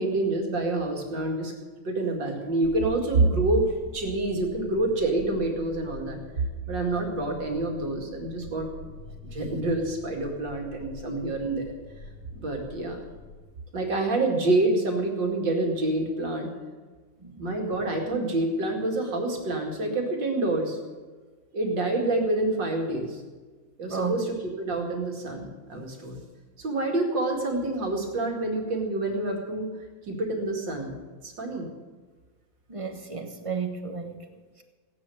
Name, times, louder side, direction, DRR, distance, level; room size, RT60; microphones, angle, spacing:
voice 1, 0.0-1.5 1.8-8.9 9.2-11.7 12.3-13.0 13.7-16.5 17.4-20.8 21.5-23.2 23.8-26.2 26.6-29.7 30.1-31.0 31.2-31.7, right 2 dB, 65° right, 1 dB, 3.0 m, -27 dB
sound 1, 2.6-13.4, left 2 dB, 70° left, 3.4 m, -45 dB
voice 2, 32.7-34.2, right 5 dB, 25° right, 6 dB, 0.9 m, -32 dB
16.5 x 9.9 x 7.1 m, 1.4 s
omnidirectional pair, 2.2 m